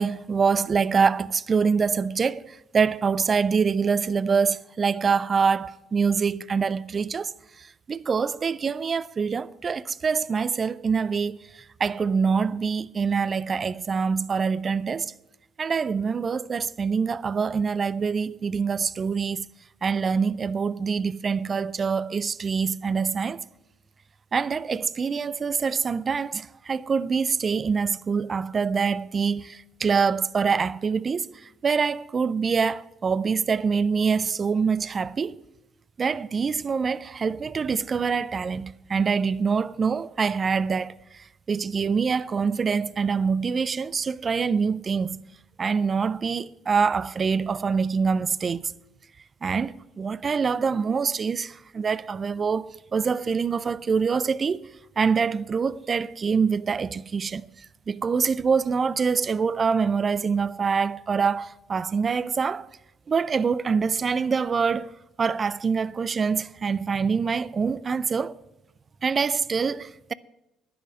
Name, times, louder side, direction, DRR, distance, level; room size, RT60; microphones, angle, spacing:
voice 1, 0.0-15.1 15.6-19.5 19.8-23.4 24.3-35.4 36.0-45.2 45.6-48.6 49.4-54.7 55.0-62.7 63.1-68.4 69.0-70.1, right 5 dB, 40° right, 0.4 m, -25 dB
10.0 x 7.9 x 8.4 m
hypercardioid pair, 50°, 0 cm